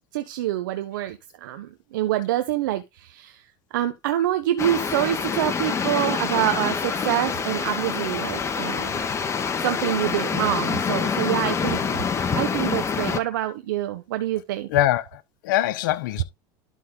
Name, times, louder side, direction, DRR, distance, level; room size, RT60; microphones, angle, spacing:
voice 1, 0.1-3.4 3.7-9.1 9.6-12.0 12.4-14.7, right 13 dB, 90° right, 0.9 m, -26 dB
sound 1, 4.6-13.2, left 6 dB, 25° left, 1.6 m, -26 dB
voice 2, 14.7-16.2, left 13 dB, 85° left, 1.1 m, -23 dB
12.0 x 4.2 x 3.8 m
supercardioid pair, 110°, 10 cm